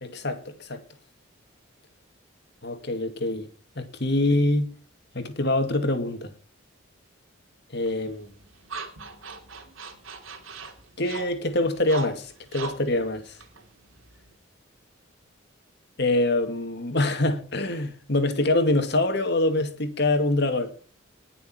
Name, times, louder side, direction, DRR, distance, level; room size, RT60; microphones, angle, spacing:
voice 1, 0.0-0.8 2.6-3.5 3.8-4.7 5.1-6.3 7.7-8.3 11.0-13.4 16.0-20.7, left 2 dB, 55° left, 2.3 m, -25 dB
sound 1, 7.9-14.4, right 4 dB, 80° right, 3.1 m, -41 dB
20.0 x 6.9 x 4.5 m
head